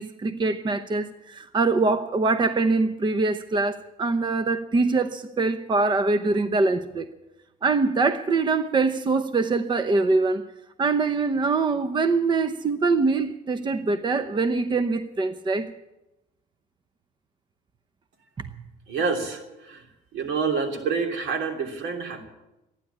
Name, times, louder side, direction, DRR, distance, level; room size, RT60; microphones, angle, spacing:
voice 1, 0.0-7.1 7.6-10.4 10.8-15.7 18.4-18.6, right 3 dB, 25° right, 0.8 m, -23 dB
voice 2, 18.9-19.9 20.1-22.3, right 5 dB, 80° right, 3.2 m, -28 dB
14.5 x 10.0 x 9.9 m
cardioid pair, 110°, 17 cm